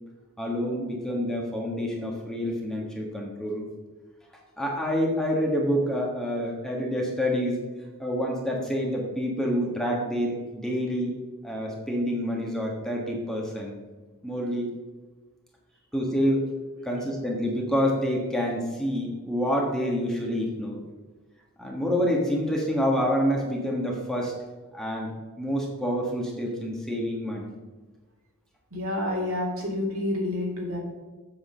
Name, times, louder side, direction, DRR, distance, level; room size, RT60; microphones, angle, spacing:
voice 1, 0.4-3.6 4.6-7.6 8.0-11.1 11.4-13.8 14.2-14.7 15.9-16.5 16.8-20.8 21.6-24.3 24.7-27.5, equal, 5° left, -1 dB, 1.4 m, -27 dB
voice 2, 28.7-30.8, left 1 dB, 70° right, -2 dB, 2.7 m, -28 dB
7.8 x 6.3 x 6.2 m, 1.3 s
head